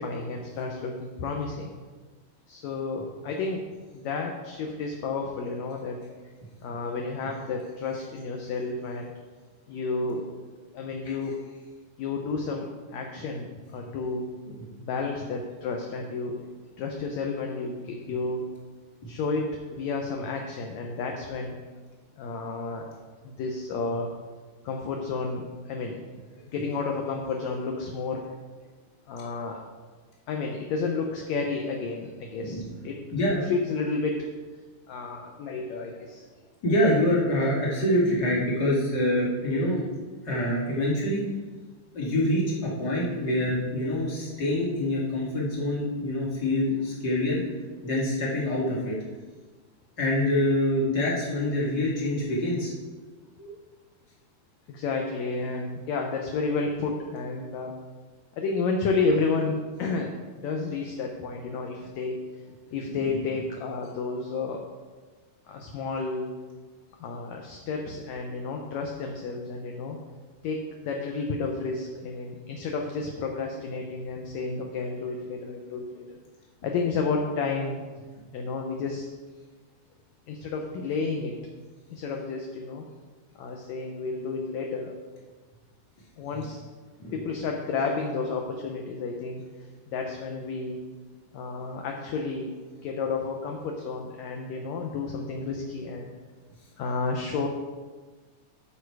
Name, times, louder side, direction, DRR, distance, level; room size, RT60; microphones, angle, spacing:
voice 1, 0.0-1.7 2.5-3.6 3.9-6.0 6.6-9.1 9.7-10.3 10.7-11.4 12.0-14.3 14.8-16.4 16.8-18.5 19.1-21.6 22.2-22.9 23.2-24.1 24.6-26.0 26.5-28.2 29.1-29.6 30.3-34.3 34.9-36.2 54.7-57.7 58.4-62.2 62.7-64.6 65.5-66.3 67.0-70.0 70.4-76.2 76.6-77.8 78.3-79.1 80.3-81.4 81.9-82.8 83.4-84.9 86.2-86.6 87.1-89.4 89.9-90.8 91.3-92.5 92.8-96.1 96.8-97.5, left 4 dB, 75° left, 2 dB, 1.8 m, -31 dB
voice 2, 33.1-33.4 36.6-39.9 40.2-41.3 41.9-47.4 47.8-49.0 50.0-52.7 53.4-53.5 62.9-63.0 86.3-86.4 87.0-87.1, left 1 dB, 35° left, -5 dB, 2.2 m, -26 dB
11.5 x 5.5 x 4.7 m, 1.4 s
omnidirectional pair, 3.9 m